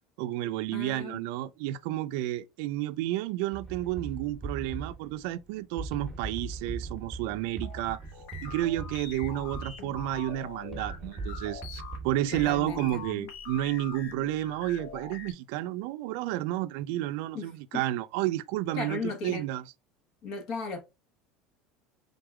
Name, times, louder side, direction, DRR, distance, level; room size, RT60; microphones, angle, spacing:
voice 1, 0.2-8.0 8.4-19.6, right 14 dB, 70° right, 0.4 m, -31 dB
voice 2, 0.7-1.2 12.3-13.0 17.3-17.8 18.7-19.5 20.2-20.8, left 4 dB, 50° left, 1.2 m, -36 dB
sound 1, 3.5-13.1, right 3 dB, 5° right, 1.2 m, -40 dB
sound 2, 7.6-15.3, left 5 dB, 90° left, 1.2 m, -44 dB
3.8 x 3.5 x 3.3 m
cardioid pair, 155°, 0 cm